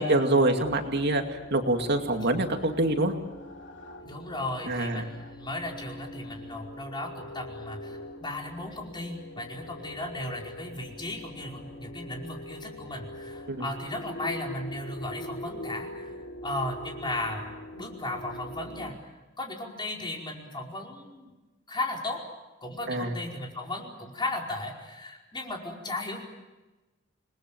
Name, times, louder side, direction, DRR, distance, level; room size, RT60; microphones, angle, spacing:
voice 1, 0.0-3.1 4.7-5.0 13.5-13.7 22.9-23.1, right 2 dB, 55° right, 4 dB, 2.4 m, -25 dB
sound 1, 0.6-18.9, left 1 dB, 60° left, 3.1 m, -43 dB
voice 2, 4.0-16.1 16.4-17.4 17.7-21.3 21.7-22.3 22.6-26.2, left 2 dB, 25° left, 0 dB, 5.0 m, -36 dB
28.5 x 21.0 x 9.0 m, 1.1 s
head